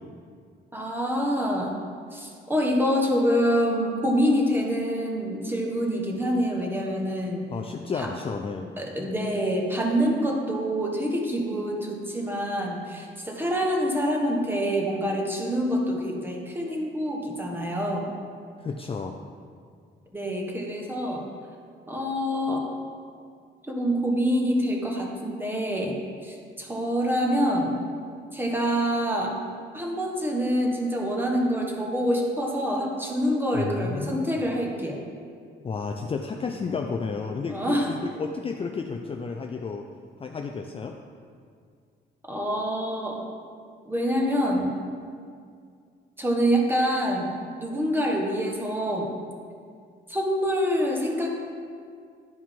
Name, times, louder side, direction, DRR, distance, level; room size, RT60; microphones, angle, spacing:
voice 1, 0.7-1.7 2.1-7.5 8.0-8.1 8.8-18.1 20.1-21.2 21.9-22.7 23.7-26.0 26.2-27.8 28.3-29.3 29.7-35.0 37.5-37.9 42.3-43.2 43.8-44.7 46.2-47.3 47.6-49.1 50.1-51.3, equal, 10° right, -1 dB, 1.3 m, -26 dB
voice 2, 7.5-8.7 18.6-19.2 33.5-34.4 35.6-39.9 40.2-41.0, left 5 dB, 30° left, 3 dB, 0.4 m, -32 dB
11.0 x 4.6 x 3.7 m, 2.2 s
cardioid pair, 90°, 20 cm